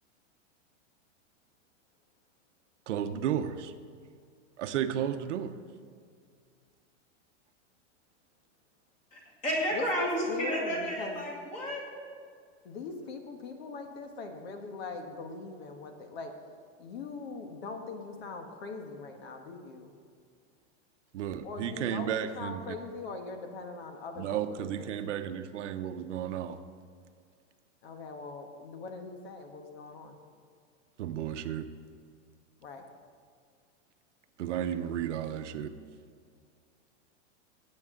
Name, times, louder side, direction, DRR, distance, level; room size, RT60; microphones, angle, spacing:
voice 1, 2.9-3.7 4.6-5.5 21.1-22.6 24.2-26.6 31.0-31.7 34.4-35.7, right 9 dB, 75° right, 9 dB, 0.9 m, -33 dB
voice 2, 9.1-11.8, equal, 20° left, -2 dB, 2.4 m, -31 dB
voice 3, 9.7-11.3 12.6-16.4 16.8-20.0 21.4-24.9 27.8-30.2 32.6-32.9, left 4 dB, 55° left, 5 dB, 1.5 m, -41 dB
16.5 x 8.9 x 3.8 m, 2.2 s
supercardioid pair, 170°, 36 cm